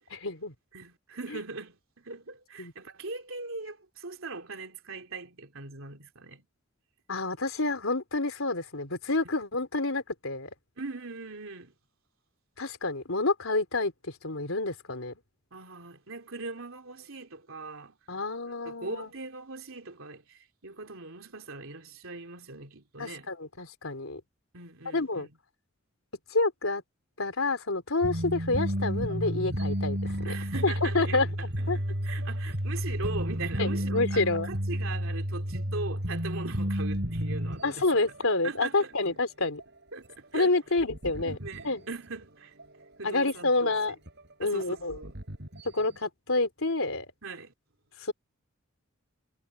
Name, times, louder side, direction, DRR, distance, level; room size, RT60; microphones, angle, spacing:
voice 1, 0.1-0.5 2.6-2.7 7.1-10.5 12.6-13.9 14.2-15.1 18.1-19.1 23.0-24.2 24.9-25.3 26.3-26.8 27.2-30.3 30.6-31.3 31.7-31.8 33.6-34.5 37.6-39.6 40.3-41.4 41.6-41.8 43.0-44.0 44.4-45.0 45.7-47.1 48.0-48.1, left 2 dB, 75° left, 3.6 m, -28 dB
voice 2, 0.7-6.4 10.8-11.7 15.5-18.0 18.4-23.3 24.5-25.3 30.2-31.2 31.7-37.9 38.4-38.9 39.9-40.6 41.2-42.5 43.0-43.7 44.4-45.1 47.2-47.5, right 3 dB, 75° right, 3.2 m, -40 dB
sound 1, 28.0-38.3 38.5-38.8 39.1-39.2 39.6-42.2 42.6-43.1 43.6-43.7 44.1-46.0, equal, 55° right, 6.7 m, -32 dB
head